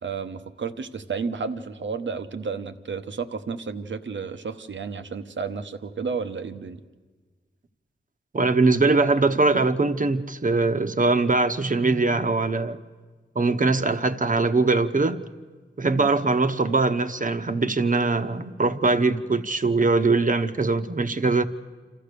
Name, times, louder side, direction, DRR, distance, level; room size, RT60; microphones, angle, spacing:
voice 1, 0.0-6.8, right 5 dB, 65° right, 1.0 m, -32 dB
voice 2, 8.3-12.8 13.3-15.2 15.8-21.4, right 3 dB, 40° right, 1.0 m, -22 dB
27.5 x 14.0 x 6.8 m
cardioid pair, 55°, 20 cm